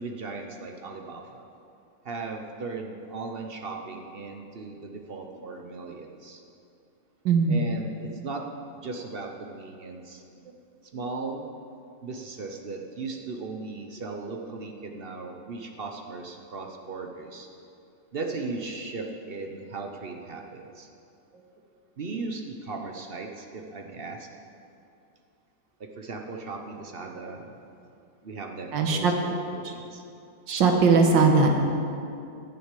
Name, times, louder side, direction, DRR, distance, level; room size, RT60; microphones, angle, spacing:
voice 1, 0.0-1.4 2.0-6.4 7.5-8.5 8.8-10.2 10.9-11.5 12.0-17.5 18.1-20.9 22.0-24.3 25.8-27.6 28.2-30.0, right 3 dB, 50° right, 3 dB, 0.7 m, -37 dB
voice 2, 7.3-7.6 28.7-29.1 29.6-29.7 30.5-31.5, right 4 dB, 80° right, 3 dB, 1.9 m, -20 dB
11.5 x 6.4 x 8.3 m, 2.6 s
omnidirectional pair, 2.0 m